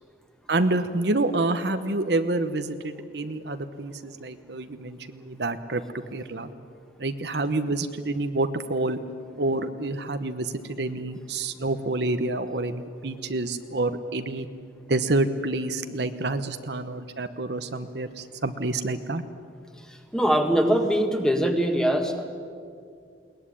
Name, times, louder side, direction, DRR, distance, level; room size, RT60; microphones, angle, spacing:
voice 1, 0.5-5.8 6.1-6.5 7.0-9.0 9.4-14.5 14.9-19.2, right 2 dB, 65° right, 9 dB, 1.0 m, -28 dB
voice 2, 20.1-22.3, right 1 dB, 5° left, 4 dB, 1.8 m, -22 dB
21.5 x 19.5 x 10.0 m, 2.3 s
head